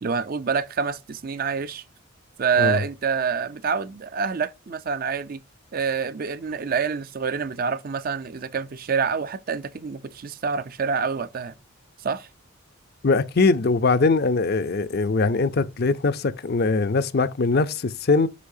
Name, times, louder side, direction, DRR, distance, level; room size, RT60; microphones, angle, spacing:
voice 1, 0.0-1.8 2.4-5.4 5.7-11.5 12.0-12.3, right 6 dB, 45° right, 0.4 m, -27 dB
voice 2, 13.0-18.3, left 3 dB, 50° left, 0.6 m, -21 dB
8.4 x 5.5 x 2.7 m
head